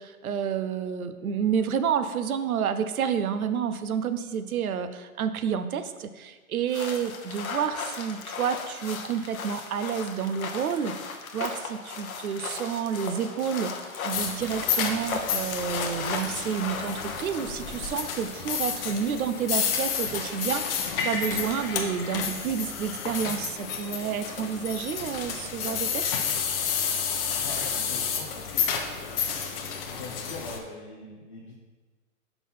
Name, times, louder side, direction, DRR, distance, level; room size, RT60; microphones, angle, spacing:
voice 1, 0.0-26.0, right 7 dB, 75° right, 10 dB, 0.6 m, -30 dB
sound 1, 6.7-17.9 19.4-20.4 21.3-22.3 22.6-23.6, left 5 dB, 70° left, 0.9 m, -37 dB
sound 2, 14.1-30.6, left 6 dB, 40° left, 0.8 m, -30 dB
voice 2, 27.4-31.5, left 3 dB, 25° left, -4 dB, 0.4 m, -43 dB
5.8 x 3.8 x 5.5 m, 1.3 s
hypercardioid pair, 140°, 43 cm